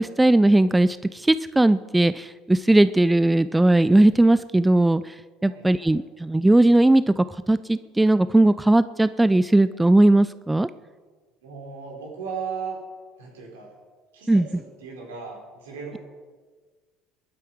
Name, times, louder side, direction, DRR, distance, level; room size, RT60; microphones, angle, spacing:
voice 1, 0.0-5.1 5.4-10.7 14.3-14.5, right 1 dB, 10° right, 15 dB, 0.4 m, -18 dB
voice 2, 5.4-5.9 11.4-12.8 13.2-13.7 14.1-16.0, right 6 dB, 75° right, 0 dB, 4.2 m, -36 dB
21.0 x 9.1 x 4.7 m, 1.4 s
figure-of-eight pair, 60°, 0 cm